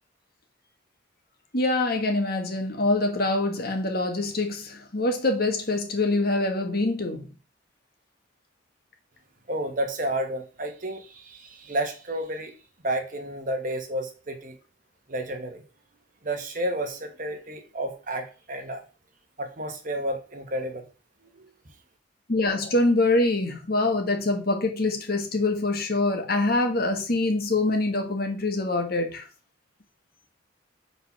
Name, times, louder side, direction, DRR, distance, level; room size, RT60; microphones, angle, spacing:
voice 1, 1.5-7.3 22.3-29.3, left 2 dB, 50° left, 1.5 m, -25 dB
voice 2, 9.5-12.5 12.8-14.6 15.1-15.6 16.2-18.8 19.4-20.8 21.3-21.7, right 1 dB, 45° right, 1.4 m, -31 dB
5.2 x 4.1 x 5.8 m
head